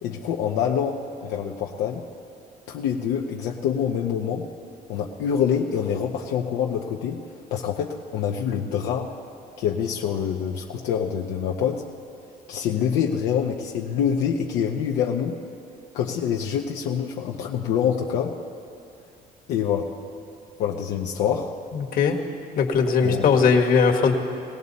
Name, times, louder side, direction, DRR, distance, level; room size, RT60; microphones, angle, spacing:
voice 1, 0.0-2.0 2.7-4.5 4.9-7.2 7.5-9.1 9.6-11.8 12.5-15.4 15.9-18.3 19.5-19.9 20.6-21.5 23.0-23.2, left 8 dB, 85° left, -1 dB, 0.9 m, -26 dB
voice 2, 22.5-24.1, left 5 dB, 55° left, 1 dB, 1.6 m, -19 dB
20.5 x 16.5 x 4.1 m, 2.5 s
cardioid pair, 110°, 17 cm